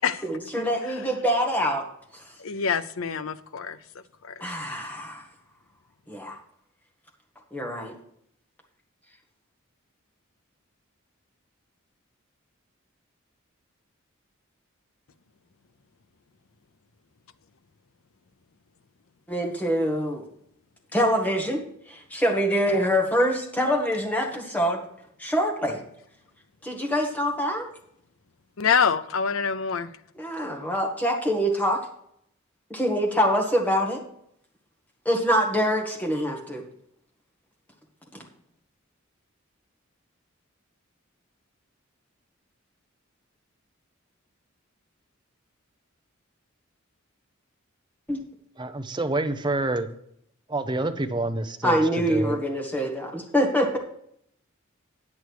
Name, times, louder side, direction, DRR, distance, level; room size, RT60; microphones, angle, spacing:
voice 1, 0.2-1.8 4.4-5.2 6.1-6.4 7.5-7.9 19.3-20.2 20.9-21.6 21.9-24.8 25.2-25.8 26.6-27.7 30.2-31.8 32.7-34.0 35.1-36.6 48.1-48.2 51.6-53.8, equal, 10° left, 1.8 m, -25 dB
voice 2, 2.4-3.8 4.2-4.3 28.6-29.9, left 6 dB, 80° left, 0.6 m, -25 dB
voice 3, 48.6-49.9 50.5-51.8 52.1-52.4, right 2 dB, 20° right, 0.7 m, -27 dB
9.2 x 8.5 x 4.7 m
head